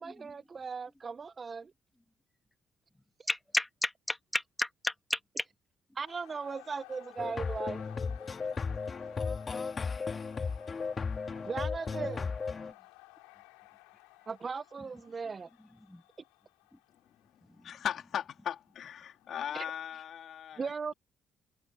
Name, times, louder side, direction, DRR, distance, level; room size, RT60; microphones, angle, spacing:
voice 1, 0.0-1.7 5.9-7.8 11.4-12.3 14.3-15.5 19.5-19.6 20.6-20.9, right 5 dB, 40° right, 1.3 m, -38 dB
voice 2, 3.3-5.5 15.9-16.0 17.5-17.8, left 1 dB, 10° left, 2.1 m, -33 dB
sound 1, 6.0-19.8, left 26 dB, 85° left, 3.4 m, -57 dB
sound 2, 7.2-12.7, left 5 dB, 40° left, 2.2 m, -35 dB
voice 3, 17.6-20.7, left 9 dB, 65° left, 2.7 m, -38 dB
hypercardioid pair, 50°, 0 cm